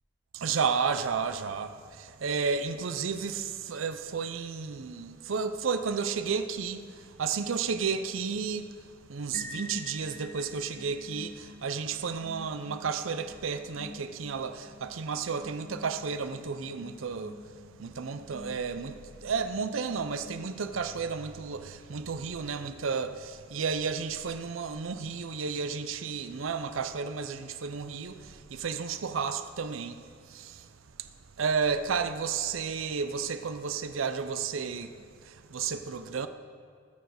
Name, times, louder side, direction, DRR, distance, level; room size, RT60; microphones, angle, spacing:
voice 1, 0.3-8.7 9.1-17.5 17.8-30.7 31.0-31.1 31.4-36.3, right 5 dB, 85° right, 0.6 m, -32 dB
sound 1, 9.3-21.0, left 1 dB, 10° left, 0.6 m, -48 dB
19.5 x 7.1 x 6.4 m
head